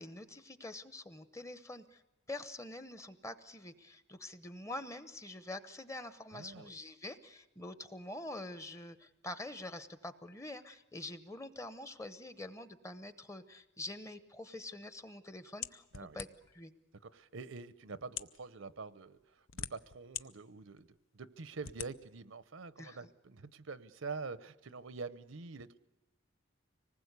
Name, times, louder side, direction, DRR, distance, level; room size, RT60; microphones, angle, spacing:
voice 1, 0.0-2.0 2.3-16.3 16.5-16.7 22.8-23.0, left 2 dB, 15° left, 12 dB, 0.8 m, -46 dB
voice 2, 6.3-6.8 15.9-16.2 17.0-19.2 19.5-20.9 21.1-25.8, right 4 dB, 75° right, 15 dB, 0.8 m, -46 dB
sound 1, 15.6-16.6 17.4-17.5 18.0-18.4 19.2-20.2 20.8-20.9 21.6-21.9, left 10 dB, 75° left, 0.7 m, -42 dB
25.5 x 19.5 x 8.2 m, 1.0 s
head